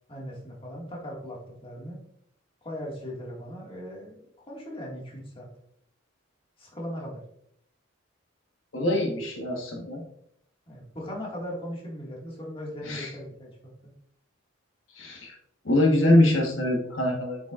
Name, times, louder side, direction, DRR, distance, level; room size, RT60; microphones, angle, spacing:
voice 1, 0.1-2.0 2.6-5.5 6.6-7.2 10.7-13.7, equal, 25° left, -3 dB, 2.0 m, -38 dB
voice 2, 8.7-10.0 12.8-13.1 14.9-15.4 15.6-17.5, left 1 dB, 75° left, 0 dB, 1.4 m, -24 dB
7.5 x 7.1 x 2.5 m, 0.70 s
head